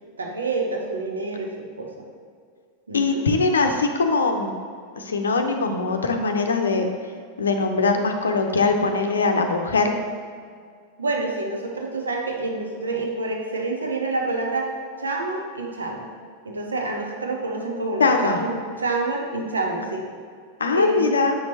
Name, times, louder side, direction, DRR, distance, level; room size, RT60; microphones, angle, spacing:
voice 1, 0.2-2.1 2.9-3.2 11.0-14.7 15.0-16.1 16.4-20.1 20.7-21.2, right 2 dB, 75° right, 1 dB, 1.0 m, -27 dB
voice 2, 2.9-4.5 5.0-6.9 7.4-9.9 18.0-18.4 20.6-21.4, left 3 dB, 70° left, 5 dB, 0.6 m, -21 dB
7.6 x 6.1 x 2.9 m, 2.1 s
figure-of-eight pair, 90°, 0 cm